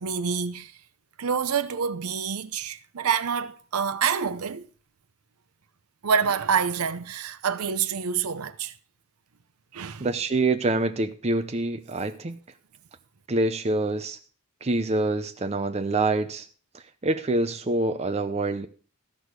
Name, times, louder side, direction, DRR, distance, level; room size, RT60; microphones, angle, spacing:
voice 1, 0.0-0.7 1.2-4.7 6.0-8.7 9.7-10.1, right 6 dB, 80° right, 0.7 m, -27 dB
voice 2, 10.0-12.4 13.3-14.2 14.6-16.5 17.0-18.7, right 2 dB, 30° right, 0.6 m, -26 dB
14.5 x 6.3 x 4.7 m
head